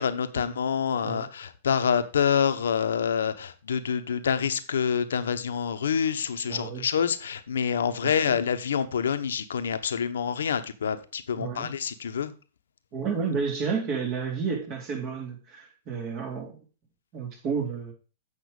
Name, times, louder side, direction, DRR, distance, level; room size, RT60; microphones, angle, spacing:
voice 1, 0.0-12.3, left 7 dB, 75° left, 1.0 m, -27 dB
voice 2, 6.5-6.9 8.0-8.4 11.4-11.7 12.9-16.6 17.1-17.9, right 5 dB, 40° right, 3.6 m, -31 dB
8.3 x 5.7 x 5.4 m
hypercardioid pair, 115°, 0 cm